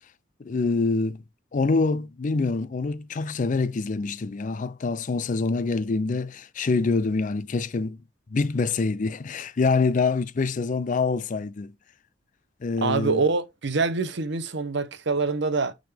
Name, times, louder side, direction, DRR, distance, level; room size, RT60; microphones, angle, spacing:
voice 1, 0.4-1.2 1.5-8.0 8.3-11.7 12.6-13.2, left 4 dB, 40° left, 0.4 m, -25 dB
voice 2, 12.8-15.7, right 4 dB, 65° right, 0.9 m, -25 dB
8.6 x 3.8 x 3.4 m
head